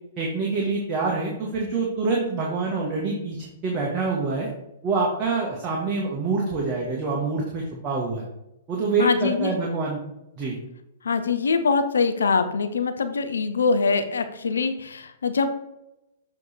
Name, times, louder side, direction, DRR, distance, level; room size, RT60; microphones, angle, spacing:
voice 1, 0.2-4.5 4.8-8.2 8.7-10.0 10.4-10.6, right 3 dB, 30° right, -3 dB, 1.4 m, -26 dB
voice 2, 9.0-9.5 11.0-15.5, left 4 dB, 80° left, 9 dB, 0.6 m, -23 dB
7.2 x 3.3 x 4.3 m, 0.88 s
hypercardioid pair, 115°, 0 cm